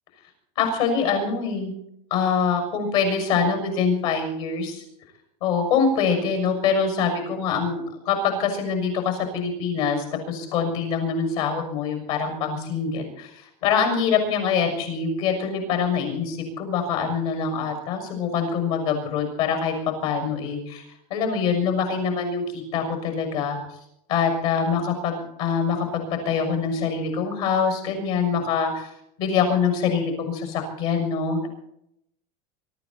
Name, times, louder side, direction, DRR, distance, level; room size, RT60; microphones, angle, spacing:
voice 1, 0.6-1.7 2.1-4.8 5.4-19.7 20.0-20.8 21.1-23.6 24.1-28.9 29.2-31.5, left 6 dB, 60° left, 5 dB, 6.6 m, -24 dB
24.0 x 13.5 x 4.3 m, 0.78 s
supercardioid pair, 175°, 20 cm